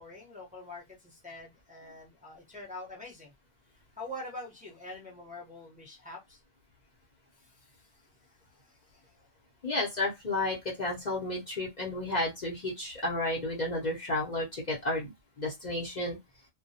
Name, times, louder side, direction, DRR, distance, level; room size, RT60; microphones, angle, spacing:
voice 1, 0.0-3.3 4.0-6.4 7.4-7.9 8.6-9.1, left 1 dB, 10° right, 0.7 m, -45 dB
voice 2, 9.6-15.1 15.4-16.2, left 2 dB, 45° left, 0.8 m, -32 dB
2.2 x 2.2 x 2.7 m
omnidirectional pair, 1.1 m